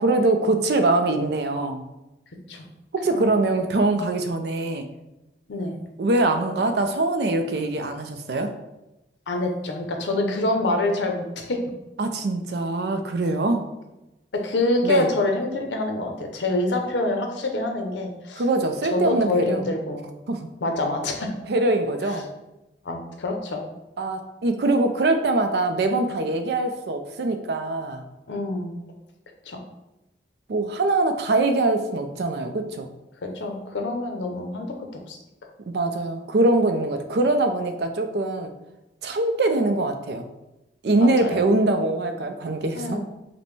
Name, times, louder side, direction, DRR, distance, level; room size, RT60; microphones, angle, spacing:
voice 1, 0.0-1.8 2.9-4.9 6.0-8.5 12.0-13.7 14.8-15.1 18.4-19.6 20.3-20.5 21.5-22.3 24.0-28.0 30.5-32.9 35.7-38.5 39.0-40.2 40.8-43.0, right 2 dB, 65° right, 7 dB, 0.4 m, -23 dB
voice 2, 9.3-11.6 14.3-18.4 18.8-20.1 20.6-21.3 22.0-22.2 22.8-23.6 28.3-28.8 29.5-29.6 33.2-35.2 41.0-41.6 42.7-43.0, left 2 dB, 85° left, 3 dB, 0.6 m, -26 dB
5.1 x 2.1 x 3.1 m, 0.96 s
head